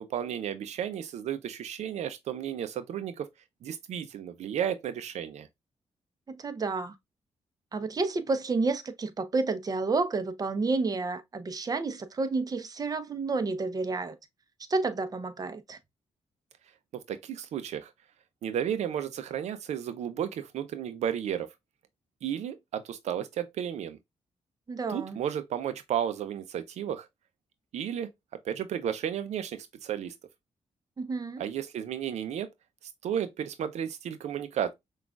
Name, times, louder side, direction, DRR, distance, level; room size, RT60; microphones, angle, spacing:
voice 1, 0.0-3.3 3.6-5.5 17.1-17.9 18.4-21.5 22.2-24.0 24.9-27.1 27.7-28.1 28.4-30.1 31.4-32.5 33.0-34.7, right 9 dB, 80° right, 0.5 m, -33 dB
voice 2, 6.3-6.9 7.7-14.1 14.7-15.8 24.7-25.2 31.0-31.4, right 3 dB, 35° right, 0.7 m, -30 dB
6.0 x 2.4 x 2.3 m
cardioid pair, 85°, 11 cm